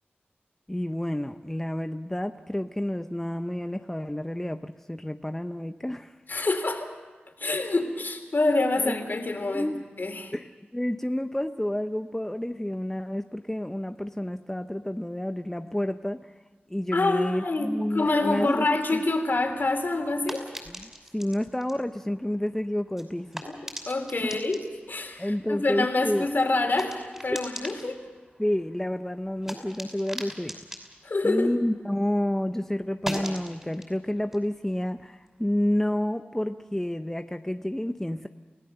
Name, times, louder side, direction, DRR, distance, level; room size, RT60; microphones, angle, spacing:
voice 1, 0.7-6.2 8.8-9.0 9.5-9.8 10.3-16.3 16.7-18.7 18.9-19.0 20.7-23.5 24.3-24.4 25.2-26.3 27.3-27.4 28.4-30.6 31.2-38.3, left 1 dB, 10° left, 7 dB, 0.7 m, -30 dB
voice 2, 6.3-6.9 7.4-9.7 10.0-10.3 16.9-20.4 23.5-23.6 23.9-24.6 24.9-28.0 31.0-31.6, left 2 dB, 55° left, 5 dB, 3.5 m, -26 dB
sound 1, 19.4-32.2 32.5-35.7, equal, 10° right, 5.6 m, -42 dB
29.0 x 17.5 x 6.9 m, 1.4 s
wide cardioid pair, 80°, 4 cm